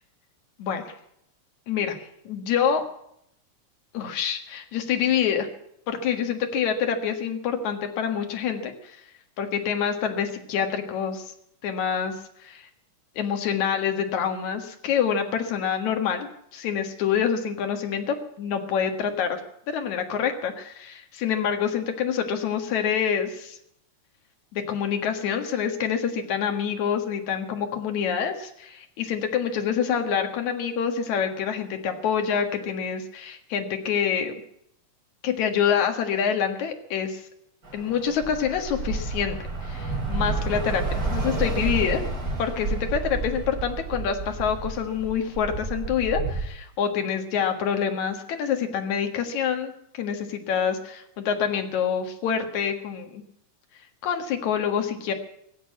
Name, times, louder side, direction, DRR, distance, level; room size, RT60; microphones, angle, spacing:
voice 1, 0.6-0.9 1.7-2.8 3.9-5.5 5.9-9.0 9.4-11.3 11.6-12.1 12.4-12.7 13.2-19.4 19.7-23.6 24.5-34.3 35.2-37.2 37.7-42.0 42.4-53.2 54.0-55.1, left 7 dB, 65° left, 5 dB, 3.0 m, -26 dB
Bus / Traffic noise roadway noise, 37.6-46.4, right 3 dB, 30° right, 4.8 m, -30 dB
20.0 x 8.0 x 8.5 m, 0.73 s
omnidirectional pair, 3.6 m